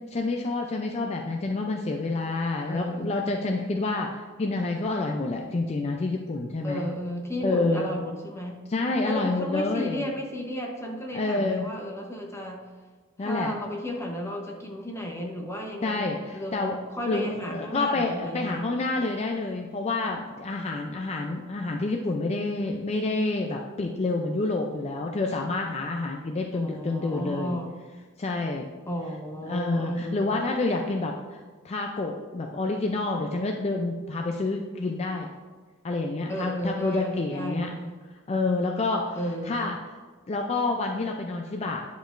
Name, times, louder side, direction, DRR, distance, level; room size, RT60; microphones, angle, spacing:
voice 1, 0.1-6.8 7.4-7.9 8.7-10.0 11.1-11.7 13.2-13.5 15.8-16.8 17.1-27.6 28.2-28.7 29.5-35.3 35.8-37.7 38.3-39.2 39.5-39.8 40.3-41.9, left 3 dB, 30° left, 1 dB, 0.4 m, -28 dB
voice 2, 2.7-3.1 6.6-8.6 9.0-12.6 13.2-18.7 26.5-27.7 28.9-30.4 36.3-37.9 39.1-39.7, equal, 15° left, 0 dB, 0.9 m, -33 dB
10.0 x 5.1 x 2.5 m, 1.4 s
head